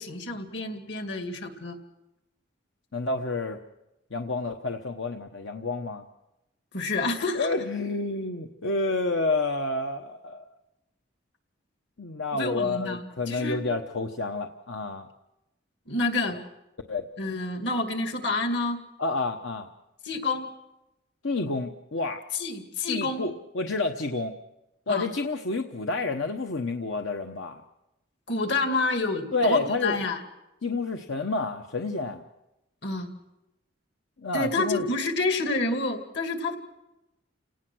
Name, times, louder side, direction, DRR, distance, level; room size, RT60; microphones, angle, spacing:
voice 1, 0.0-1.8 6.7-7.5 12.3-13.6 15.9-16.4 17.2-18.8 20.0-20.5 22.3-23.3 24.9-25.1 28.3-30.2 32.8-33.1 34.3-36.6, left 3 dB, 70° left, 5 dB, 2.5 m, -28 dB
voice 2, 2.9-3.6 4.1-6.0 7.3-10.4 12.0-15.1 16.9-17.0 19.0-19.7 21.2-22.2 22.9-24.4 24.9-27.6 29.3-30.0 30.6-32.2 34.2-34.8, left 3 dB, 85° left, 5 dB, 1.1 m, -29 dB
30.0 x 18.0 x 6.3 m, 0.92 s
head